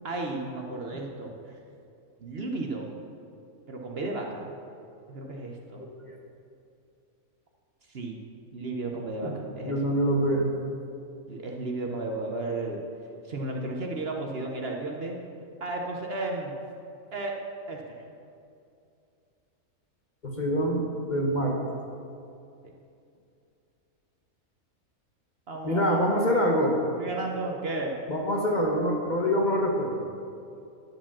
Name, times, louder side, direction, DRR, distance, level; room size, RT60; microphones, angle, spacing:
voice 1, 0.0-1.3 2.2-2.9 3.7-4.5 5.1-5.8 7.9-8.2 8.5-9.8 11.3-12.8 13.3-15.2 15.6-16.5 17.1-17.4 17.7-18.0 25.5-26.0 27.0-28.0, right 2 dB, 50° right, 1 dB, 1.0 m, -33 dB
voice 2, 5.7-6.1 9.2-9.3 9.6-10.5 20.2-21.6 25.6-26.8 28.1-30.1, equal, 35° left, 0 dB, 1.0 m, -25 dB
11.0 x 5.0 x 7.2 m, 2.5 s
omnidirectional pair, 1.5 m